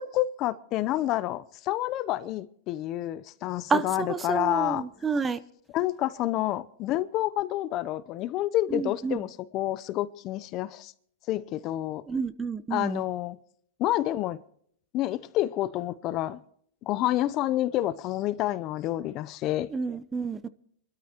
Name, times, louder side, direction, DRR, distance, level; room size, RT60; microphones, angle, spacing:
voice 1, 0.0-4.8 5.7-10.9 11.3-12.0 12.7-13.4 13.8-14.4 14.9-16.4 16.9-19.7, left 14 dB, 40° left, 0.6 m, -29 dB
voice 2, 3.7-5.4 8.7-9.2 12.1-13.0 19.7-20.5, right 5 dB, 15° right, 0.7 m, -29 dB
26.5 x 13.0 x 2.9 m
hypercardioid pair, 135°, 0 cm